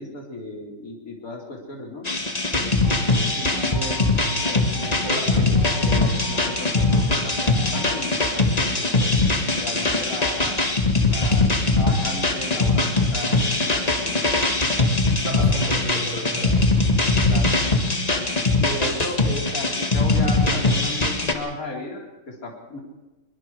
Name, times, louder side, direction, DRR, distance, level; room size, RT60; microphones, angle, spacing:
voice 1, 0.0-2.0 2.5-4.1 4.4-9.1 9.5-10.7 11.0-13.4 13.6-14.2 17.3-17.5 18.1-18.2 18.6-22.8, left 1 dB, 40° left, -1 dB, 4.5 m, -35 dB
sound 1, 2.0-21.3, left 2 dB, 20° left, 1.7 m, -21 dB
sound 2, 2.8-8.0, left 1 dB, 85° left, 4.2 m, -40 dB
voice 2, 5.1-5.4 15.2-16.7, equal, 35° right, -2 dB, 8.0 m, -31 dB
24.0 x 22.0 x 4.9 m, 1.1 s
omnidirectional pair, 2.2 m